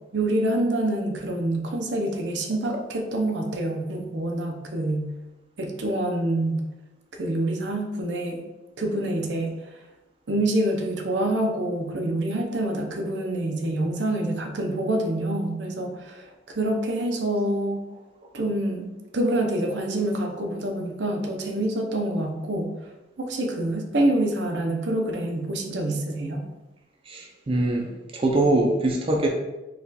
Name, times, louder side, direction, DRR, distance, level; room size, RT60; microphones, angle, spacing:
voice 1, 0.1-5.1 5.6-6.6 7.2-8.4 8.8-9.5 10.3-17.8 18.3-22.7 23.2-26.4, right 1 dB, 75° right, 2 dB, 0.6 m, -26 dB
voice 2, 27.1-29.3, right 2 dB, 30° right, 1 dB, 0.5 m, -23 dB
4.1 x 2.4 x 4.0 m, 1.1 s
head